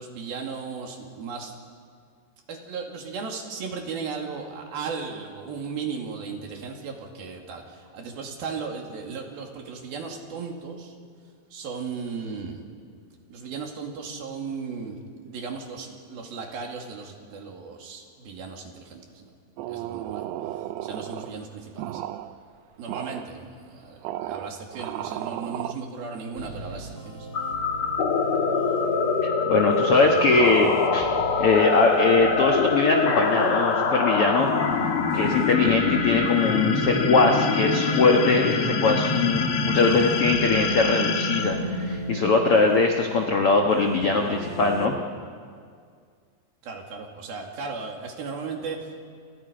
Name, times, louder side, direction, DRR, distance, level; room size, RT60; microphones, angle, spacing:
voice 1, 0.0-1.5 2.5-10.9 11.5-12.6 13.3-19.3 19.7-20.2 20.5-22.0 22.8-27.3 46.6-48.9, right 5 dB, 60° right, 1 dB, 4.1 m, -36 dB
sound 1, 19.6-21.4 21.8-22.3 22.9-23.3 24.0-25.7, right 13 dB, 80° right, 2.6 m, -34 dB
sound 2, 26.4-45.0, right 2 dB, 30° right, 1.4 m, -38 dB
sound 3, 27.3-42.5, left 5 dB, 60° left, 1.4 m, -25 dB
voice 2, 29.2-31.1 31.4-34.5 35.1-44.9, left 3 dB, 85° left, 2 dB, 1.2 m, -21 dB
29.5 x 29.0 x 5.2 m, 2.1 s
omnidirectional pair, 5.0 m